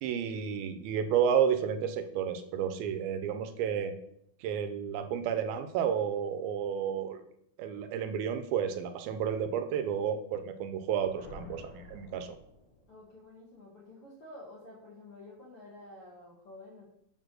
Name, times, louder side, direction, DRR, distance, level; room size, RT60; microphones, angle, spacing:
voice 1, 0.0-3.9 4.4-7.2 7.6-12.4, right 8 dB, 80° right, 9 dB, 2.4 m, -31 dB
Thunder, 10.9-13.1, left 2 dB, 70° left, 3.2 m, -50 dB
voice 2, 12.9-16.9, left 2 dB, 55° left, -4 dB, 1.7 m, -50 dB
7.1 x 4.4 x 6.2 m, 0.74 s
omnidirectional pair, 4.3 m